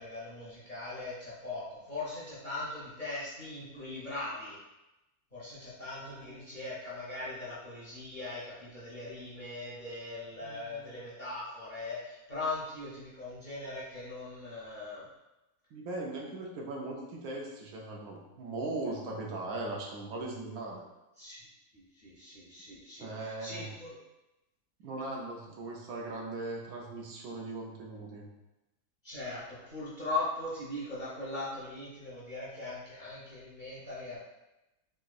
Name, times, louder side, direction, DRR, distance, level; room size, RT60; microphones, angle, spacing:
voice 1, 0.0-4.6 5.3-15.0 21.2-21.4 21.7-23.9 29.0-34.2, left 2 dB, 40° left, -9 dB, 0.8 m, -40 dB
voice 2, 6.0-6.5 10.4-10.9 15.7-20.8 23.0-23.7 24.8-28.3, right 2 dB, 75° right, -1 dB, 1.0 m, -39 dB
3.5 x 2.9 x 2.3 m, 0.97 s
omnidirectional pair, 1.6 m